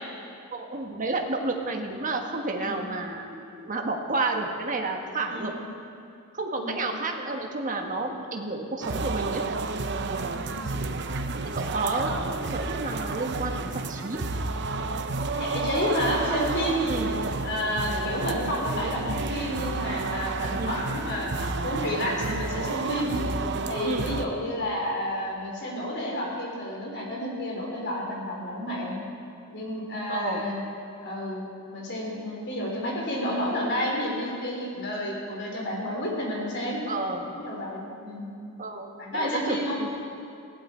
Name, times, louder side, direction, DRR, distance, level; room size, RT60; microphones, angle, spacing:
voice 1, 0.5-5.5 6.3-9.4 11.4-14.2 16.9-17.2 20.6-20.7 23.8-24.1 30.1-30.4 36.9-37.3 38.6-38.9 39.1-39.9, right 2 dB, 35° right, 2 dB, 1.4 m, -30 dB
voice 2, 5.3-5.6 6.5-6.8 10.1-10.6 15.4-16.8 17.4-23.1 23.7-29.0 29.5-30.6 31.0-31.4 31.7-36.8 37.3-38.3 39.0-39.8, left 1 dB, 55° left, -2 dB, 3.9 m, -30 dB
sound 1, 8.8-24.3, right 3 dB, 55° right, 0.8 m, -30 dB
20.0 x 15.5 x 4.5 m, 2.5 s
head